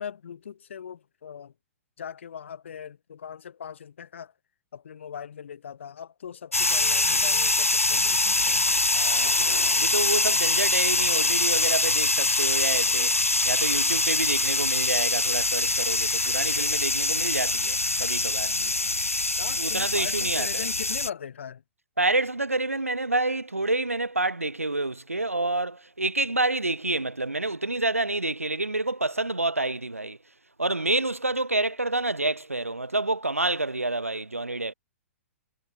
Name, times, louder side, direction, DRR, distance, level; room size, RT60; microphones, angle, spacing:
voice 1, 0.0-1.5 2.0-4.3 4.7-8.6 19.4-21.6, left 8 dB, 60° left, 7.3 m, -40 dB
sound 1, 6.5-21.1, left 2 dB, 85° left, 2.3 m, -24 dB
voice 2, 8.9-13.2 13.4-18.5 19.6-20.7 22.0-30.2 30.6-34.7, right 2 dB, 85° right, 0.9 m, -28 dB
figure-of-eight pair, 115°, 7 cm